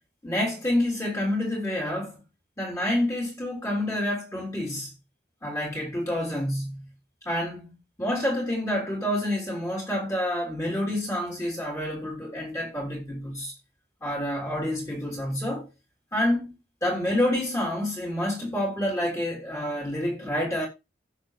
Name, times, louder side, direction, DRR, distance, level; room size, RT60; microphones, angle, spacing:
voice 1, 0.2-2.2 2.6-4.9 5.4-6.8 7.3-7.7 8.0-13.5 14.0-15.7 16.1-16.6 16.8-20.7, left 1 dB, 15° left, 3.6 m, -28 dB
15.5 x 6.9 x 3.3 m
head